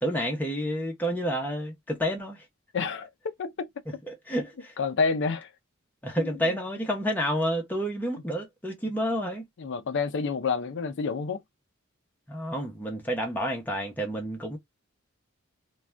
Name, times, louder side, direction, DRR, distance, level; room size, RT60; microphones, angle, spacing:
voice 1, 0.0-2.4 4.1-4.7 6.0-9.4 12.3-14.6, equal, 10° left, 0.7 m, -29 dB
voice 2, 2.7-3.1 3.4-3.7 4.8-5.5 6.2-6.3 9.6-11.4, left 5 dB, 60° left, 0.5 m, -28 dB
2.4 x 2.3 x 3.2 m
head